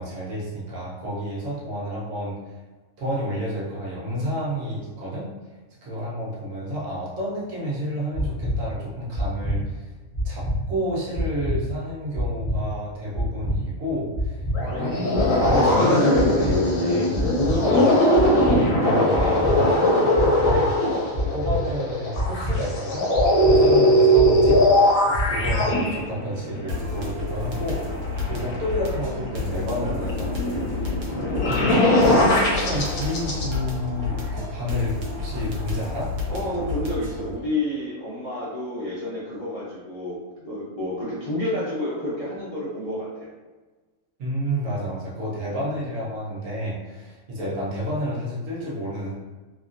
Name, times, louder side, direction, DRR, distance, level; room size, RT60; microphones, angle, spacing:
voice 1, 0.0-2.6 3.0-5.3 5.8-9.9 10.2-17.2 17.6-23.1 23.5-28.0 28.3-30.9 31.4-36.1 44.2-49.1, equal, 70° right, -5 dB, 1.1 m, -30 dB
sound 1, 8.1-8.5 9.1-9.5 10.1-10.5 11.1-11.5 12.1-12.5 13.1-13.5 14.1-14.5 15.1-15.5 16.1-16.5 17.1-17.5 18.1-18.5 19.1-19.5 20.1-20.5 21.1-21.5 22.1-22.5 23.1-23.5 24.1-24.5 25.1-25.5, right 1 dB, 35° right, 0.7 m, -26 dB
sound 2, 14.5-33.4, left 1 dB, 70° left, 1.0 m, -20 dB
sound 3, 26.7-37.4, left 3 dB, 90° right, 1.2 m, -31 dB
voice 2, 36.3-43.3, left 1 dB, 35° left, -11 dB, 0.6 m, -30 dB
2.9 x 2.6 x 2.5 m, 1.3 s
omnidirectional pair, 1.5 m